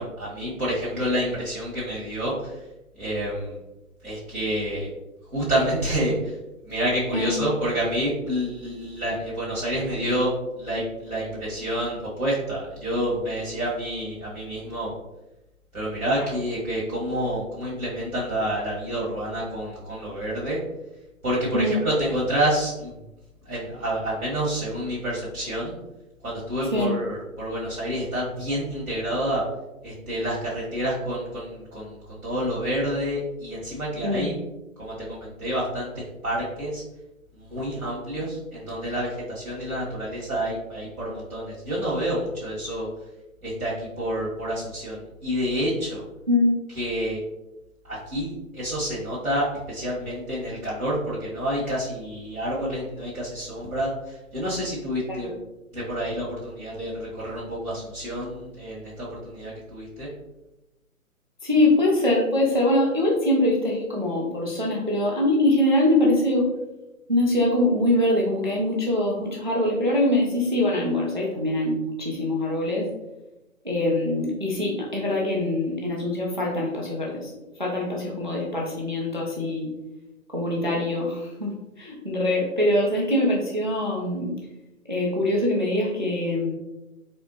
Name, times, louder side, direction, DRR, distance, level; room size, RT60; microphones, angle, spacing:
voice 1, 0.0-2.6 3.0-3.6 4.0-4.9 5.3-6.3 6.6-14.9 15.7-20.6 21.2-23.0 23.4-25.7 26.2-29.4 29.8-34.3 34.8-36.8 37.4-42.9 43.4-46.0 46.7-47.2 47.9-55.4 55.7-60.1, equal, 80° right, -7 dB, 1.4 m, -28 dB
voice 2, 46.3-46.6 55.1-55.3 61.4-66.5 67.1-72.9 73.6-77.3 77.6-79.7 80.3-84.3 84.9-86.5, left 1 dB, 35° right, -2 dB, 0.4 m, -23 dB
4.2 x 2.1 x 2.7 m, 0.98 s
figure-of-eight pair, 145°, 43 cm